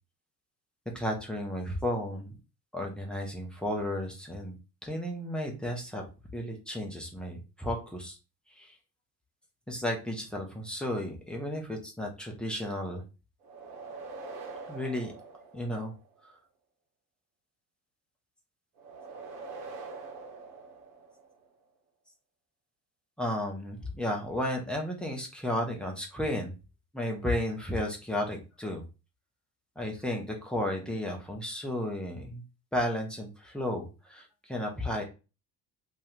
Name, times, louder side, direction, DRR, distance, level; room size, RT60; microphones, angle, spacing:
voice 1, 0.9-2.3 2.7-4.6 4.8-6.0 6.3-8.2 8.5-8.8 9.7-13.0 14.7-15.1 15.5-15.9 16.2-16.3 23.2-26.5 26.9-28.8 29.8-32.4 32.7-35.0, left 1 dB, ahead, 0 dB, 0.3 m, -33 dB
sound 1, 13.4-16.2 18.8-21.5, right 3 dB, 70° right, 0.8 m, -44 dB
2.2 x 2.1 x 2.9 m, 0.29 s
figure-of-eight pair, 55°, 50 cm